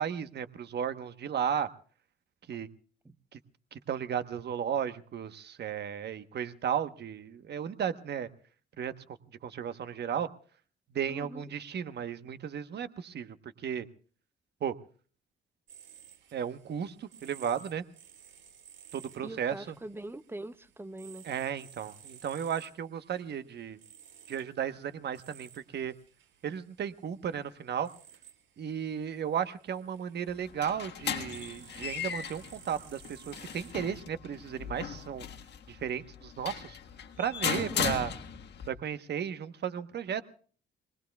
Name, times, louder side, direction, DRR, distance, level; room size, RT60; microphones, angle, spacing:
voice 1, 0.0-1.7 2.5-2.7 3.3-3.4 3.7-8.3 8.8-8.9 9.4-10.3 10.9-13.9 14.6-14.7 16.3-17.8 18.9-19.8 21.2-23.8 24.3-25.9 26.4-27.9 28.6-35.2 35.7-36.8 37.2-38.1 38.7-40.2, right 8 dB, 55° right, 1.1 m, -34 dB
voice 2, 11.1-11.5 19.2-21.3 37.5-38.0, right 2 dB, 10° right, 0.7 m, -43 dB
sound 1, 15.7-33.7, right 8 dB, 75° right, 4.5 m, -56 dB
sound 2, 30.3-38.7, left 8 dB, 60° left, 1.6 m, -37 dB
26.5 x 20.0 x 2.3 m
cardioid pair, 90°, 20 cm